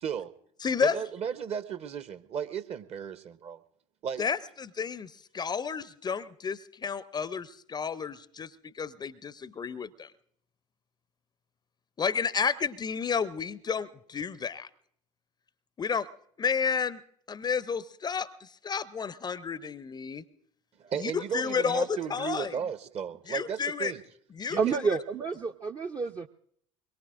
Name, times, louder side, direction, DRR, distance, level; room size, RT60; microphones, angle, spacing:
voice 1, 0.0-0.3 0.8-3.6 4.0-4.2 20.8-24.0 24.5-24.6, right 7 dB, 40° right, 13 dB, 0.9 m, -35 dB
voice 2, 0.6-1.0 4.2-10.1 12.0-14.7 15.8-16.1 16.4-17.0 17.3-18.3 18.6-20.2 21.0-22.6 23.3-23.9 24.4-24.6, left 6 dB, 25° left, 18 dB, 0.5 m, -31 dB
voice 3, 24.6-26.3, right 5 dB, 25° right, 4 dB, 0.5 m, -29 dB
23.5 x 22.0 x 2.5 m, 0.65 s
figure-of-eight pair, 65°, 17 cm